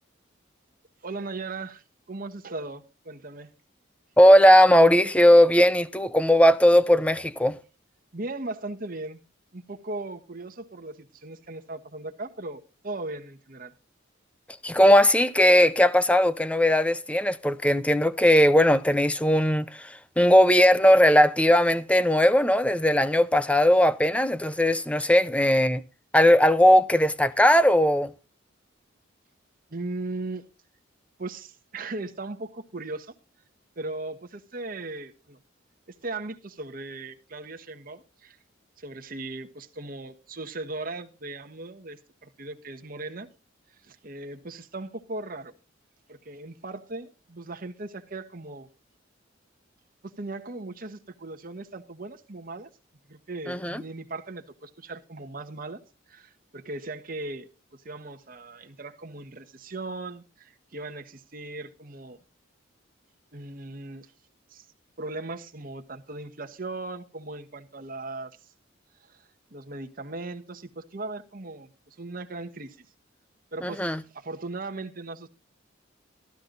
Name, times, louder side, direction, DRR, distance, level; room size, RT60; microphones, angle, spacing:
voice 1, 1.0-3.5 8.1-9.2 9.5-13.7 29.7-30.4 31.2-33.1 33.8-35.4 35.9-38.4 38.8-43.3 43.8-45.5 46.1-48.7 50.0-52.7 53.1-55.8 56.1-62.2 63.3-64.1 64.5-64.6 65.0-68.4 69.1-69.2 69.5-72.9 73.5-75.3, right 2 dB, 45° right, 1.3 m, -38 dB
voice 2, 4.2-7.6 14.6-25.8 26.1-28.1 53.5-53.8 73.6-74.0, equal, 5° left, 0.6 m, -18 dB
14.5 x 12.0 x 4.0 m
head